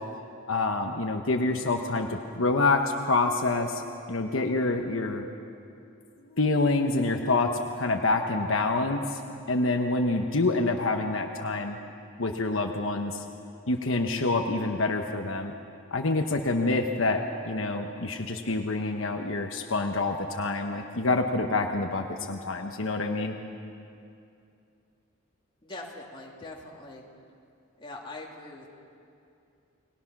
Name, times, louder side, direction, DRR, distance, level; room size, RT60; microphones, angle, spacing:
voice 1, 0.5-3.8 4.1-5.3 6.4-7.5 7.8-9.2 9.5-11.8 12.2-13.2 13.7-15.5 15.9-23.4, left 3 dB, 70° left, 3 dB, 1.2 m, -27 dB
voice 2, 25.6-27.0 27.8-28.7, left 2 dB, 25° left, -2 dB, 3.1 m, -42 dB
30.0 x 20.0 x 6.1 m, 2.6 s
head